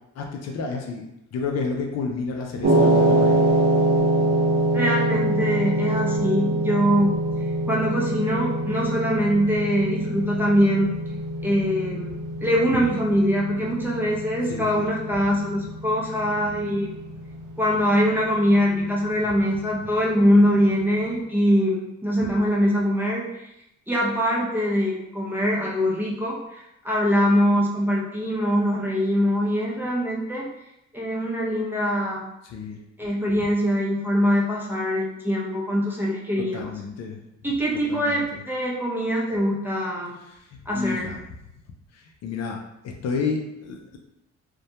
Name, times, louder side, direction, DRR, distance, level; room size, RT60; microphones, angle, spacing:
voice 1, 0.2-3.4 14.5-14.9 19.2-19.3 22.2-22.3 32.4-32.8 36.4-37.2 37.9-38.4 40.2-40.4 40.7-41.2 41.9-44.0, left 4 dB, 60° left, 1 dB, 0.5 m, -31 dB
sound 1, 2.6-20.9, right 1 dB, 60° right, 0.7 m, -25 dB
voice 2, 4.7-7.1 7.7-10.9 11.4-16.9 17.6-23.5 23.9-30.5 30.9-32.3 33.0-36.7 37.4-40.1 40.7-41.1, equal, 5° right, -4 dB, 0.6 m, -23 dB
2.2 x 2.1 x 2.8 m, 0.85 s
cardioid pair, 90°, 30 cm